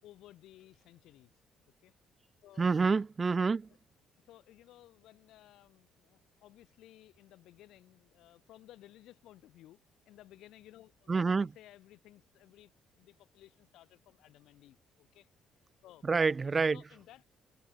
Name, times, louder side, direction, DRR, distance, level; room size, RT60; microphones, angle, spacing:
voice 1, 0.0-1.4 1.8-1.9 2.4-2.8 4.3-9.8 10.1-15.3 15.8-16.1 16.7-17.3, left 14 dB, 80° left, 4.0 m, -57 dB
voice 2, 2.6-3.7 11.1-11.5 16.0-16.8, right 4 dB, 35° right, 0.3 m, -27 dB
supercardioid pair, 75°, 0 cm